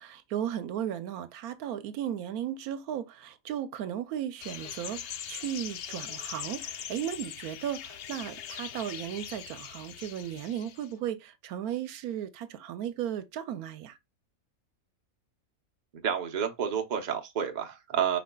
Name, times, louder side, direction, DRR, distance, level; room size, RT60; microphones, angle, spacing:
voice 1, 0.0-14.0, right 10 dB, 85° right, 1.1 m, -35 dB
sound 1, 4.4-10.9, left 9 dB, 70° left, 0.6 m, -41 dB
voice 2, 15.9-18.2, right 8 dB, 40° right, 0.8 m, -30 dB
5.1 x 4.2 x 2.2 m
omnidirectional pair, 1.5 m